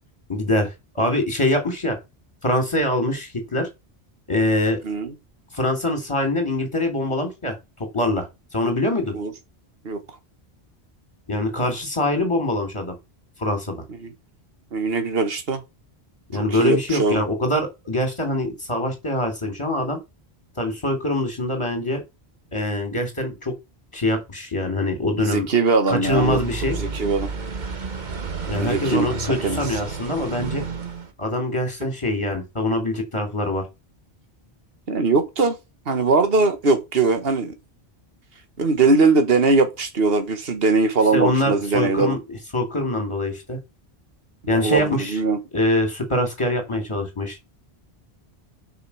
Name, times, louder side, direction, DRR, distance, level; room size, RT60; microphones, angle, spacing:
voice 1, 0.3-0.7 0.9-2.0 2.4-3.7 4.3-4.8 5.5-7.6 7.9-8.3 8.5-9.1 11.3-12.9 13.4-13.8 16.3-20.0 20.6-22.0 22.5-23.5 23.9-25.5 25.9-26.8 28.5-30.6 31.2-33.6 41.1-42.2 42.5-43.6 44.5-45.2 45.5-47.4, left 1 dB, 30° left, 3.2 m, -23 dB
voice 2, 4.8-5.1 9.1-9.3 9.8-10.0 14.0-14.1 14.7-15.6 16.3-17.2 25.2-26.4 26.8-27.3 28.6-29.8 34.9-35.6 35.9-37.5 38.6-42.2 44.5-45.4, right 3 dB, 65° right, 1.6 m, -21 dB
sound 1, 26.0-31.1, right 4 dB, 45° right, 1.3 m, -31 dB
6.6 x 5.7 x 7.0 m
omnidirectional pair, 1.1 m